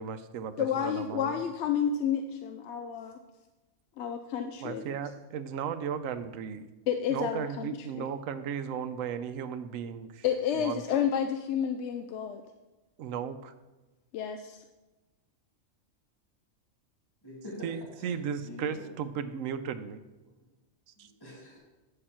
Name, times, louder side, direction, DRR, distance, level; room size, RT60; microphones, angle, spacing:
voice 1, 0.0-1.4 4.6-6.7 7.1-10.2 10.5-10.8 13.0-13.5 17.6-20.0 21.0-21.1, right 7 dB, 85° right, 11 dB, 1.0 m, -35 dB
voice 2, 0.6-3.2 4.0-4.8 6.9-7.7 7.9-8.1 10.2-12.4 14.1-14.6, left 8 dB, 65° left, 6 dB, 0.8 m, -30 dB
voice 3, 17.2-18.9 21.0-21.6, equal, 15° left, -5 dB, 2.3 m, -46 dB
8.6 x 6.7 x 4.4 m, 1.1 s
omnidirectional pair, 1.4 m